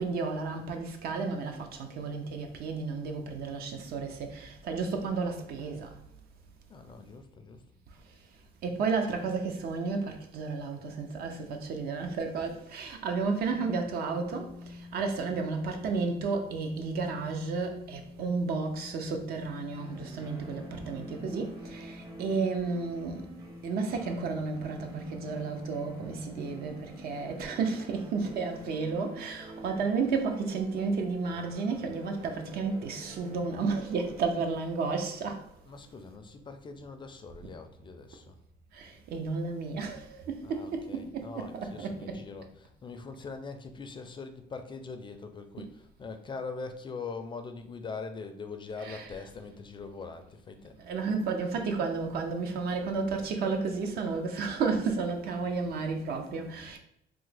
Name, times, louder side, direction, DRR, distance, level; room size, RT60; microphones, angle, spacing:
voice 1, 0.0-5.9 8.6-23.3 23.6-35.4 37.4-37.5 38.7-42.2 48.8-49.1 50.8-56.8, right 4 dB, 65° right, 0.6 m, -32 dB
voice 2, 6.7-7.6 35.6-38.4 40.4-50.8, left 4 dB, 30° left, 0.4 m, -42 dB
sound 1, 13.4-26.8, left 3 dB, 90° right, 0.9 m, -47 dB
sound 2, 19.7-36.4, right 1 dB, 25° right, 0.6 m, -48 dB
3.4 x 2.0 x 3.2 m
cardioid pair, 110°, 17 cm